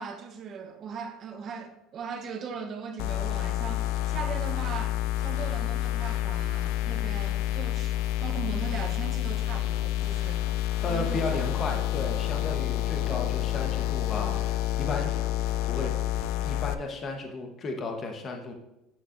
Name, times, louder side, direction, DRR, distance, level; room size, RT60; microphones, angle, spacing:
voice 1, 0.0-10.6 10.9-11.4, right 5 dB, 45° right, 1.0 m, -39 dB
sound 1, 3.0-16.7, left 13 dB, 75° left, 0.3 m, -29 dB
voice 2, 10.8-15.1 15.7-15.9 16.4-18.5, left 3 dB, 35° left, 1.1 m, -34 dB
8.2 x 6.1 x 2.6 m
supercardioid pair, 105°, 0 cm